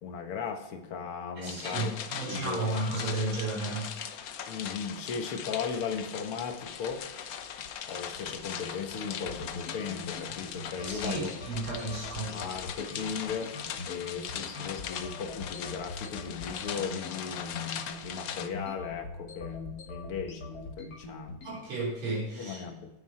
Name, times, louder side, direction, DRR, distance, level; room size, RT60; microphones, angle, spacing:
voice 1, 0.0-1.9 2.3-2.8 4.5-7.2 7.9-11.3 12.2-13.5 13.9-21.4 22.4-23.0, left 6 dB, 85° left, 5 dB, 2.2 m, -37 dB
sound 1, 1.4-18.5, left 8 dB, 65° left, 0.9 m, -40 dB
voice 2, 1.4-4.0 10.8-12.4 21.4-22.6, right 2 dB, 85° right, -4 dB, 4.5 m, -33 dB
sound 2, 6.4-21.6, left 2 dB, 50° left, 1.8 m, -44 dB
9.6 x 9.4 x 4.3 m, 0.99 s
omnidirectional pair, 2.4 m